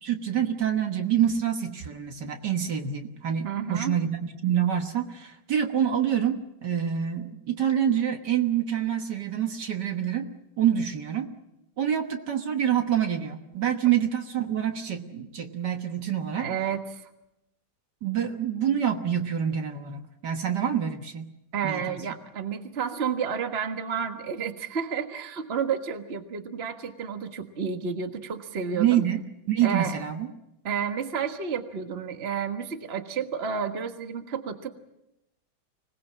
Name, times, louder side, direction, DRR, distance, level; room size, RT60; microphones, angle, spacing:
voice 1, 0.0-10.3 10.6-11.3 11.8-16.5 18.0-21.3 21.6-22.0 28.7-30.3, right 9 dB, 60° right, 6 dB, 1.8 m, -26 dB
voice 2, 3.4-4.0 16.4-17.0 21.5-29.0 29.6-30.0 30.6-34.7, right 7 dB, 35° right, 7 dB, 1.5 m, -31 dB
25.5 x 19.0 x 7.5 m, 0.88 s
omnidirectional pair, 2.2 m